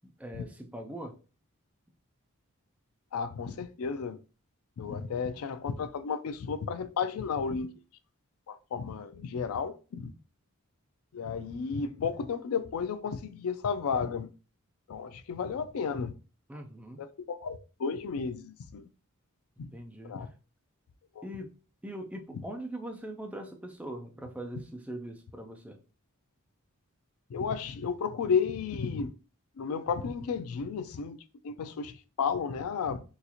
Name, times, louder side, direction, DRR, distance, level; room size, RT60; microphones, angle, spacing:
voice 1, 0.0-1.1 16.5-17.0 19.7-20.2 21.2-21.5 21.8-25.8, right 1 dB, 5° right, 0.4 m, -41 dB
voice 2, 3.1-4.2 4.8-7.7 8.5-10.1 11.1-14.3 14.9-16.1 16.5-16.6 17.0-18.9 19.6-19.7 20.0-20.3 21.2-21.3 27.3-29.1 29.6-31.2 31.4-33.0, left 6 dB, 70° left, 0.4 m, -33 dB
3.9 x 2.4 x 2.8 m
head